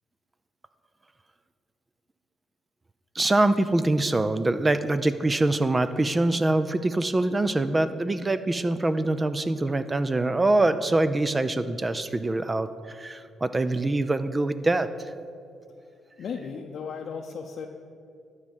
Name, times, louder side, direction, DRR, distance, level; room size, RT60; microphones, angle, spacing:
voice 1, 3.1-15.1, right 2 dB, 20° right, 12 dB, 0.5 m, -24 dB
voice 2, 16.2-17.7, left 6 dB, 60° left, 1 dB, 0.6 m, -35 dB
12.0 x 4.9 x 7.2 m, 2.5 s
cardioid pair, 90°, 0 cm